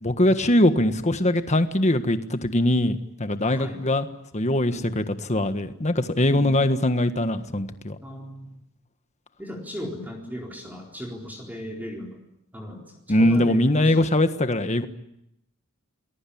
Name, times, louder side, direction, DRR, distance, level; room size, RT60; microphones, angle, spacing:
voice 1, 0.0-4.1 4.3-8.0 13.1-14.9, left 1 dB, 35° left, 9 dB, 1.5 m, -22 dB
voice 2, 4.7-5.0 8.0-8.6 9.4-12.2 12.5-12.8 13.2-14.1, equal, 10° right, 0 dB, 4.2 m, -37 dB
29.0 x 21.5 x 8.7 m, 0.80 s
head